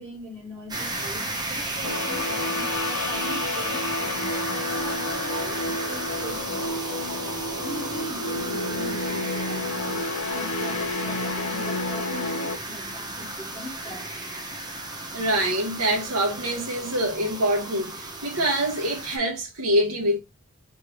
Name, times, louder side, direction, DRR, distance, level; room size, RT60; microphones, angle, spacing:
voice 1, 0.0-4.4 4.7-6.7 7.6-10.0 10.3-14.1, right 1 dB, 10° left, 2.6 m, -41 dB
sound 1, 0.7-19.2, right 2 dB, 20° right, 1.0 m, -34 dB
sound 2, 1.8-12.6, left 2 dB, 75° left, 0.6 m, -30 dB
voice 2, 15.1-20.2, right 1 dB, 85° right, 1.0 m, -25 dB
4.4 x 3.2 x 3.1 m
head